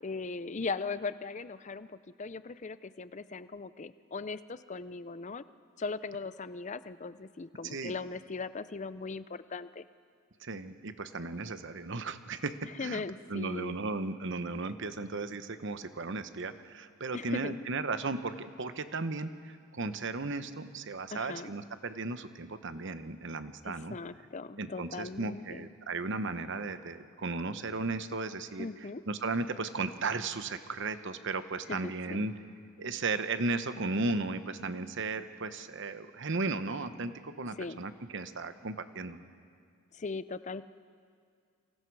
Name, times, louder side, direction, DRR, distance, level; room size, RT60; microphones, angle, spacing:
voice 1, 0.0-5.4 5.8-9.9 12.6-13.8 17.1-17.5 21.1-21.5 23.7-25.7 28.6-29.0 31.7-32.2 37.6-37.8 39.9-40.6, left 4 dB, 35° left, 14 dB, 0.5 m, -39 dB
voice 2, 10.4-13.0 13.3-24.0 24.6-28.7 29.1-32.3 32.8-39.2, right 3 dB, 55° right, 11 dB, 0.9 m, -35 dB
28.5 x 25.0 x 4.7 m, 2.2 s
head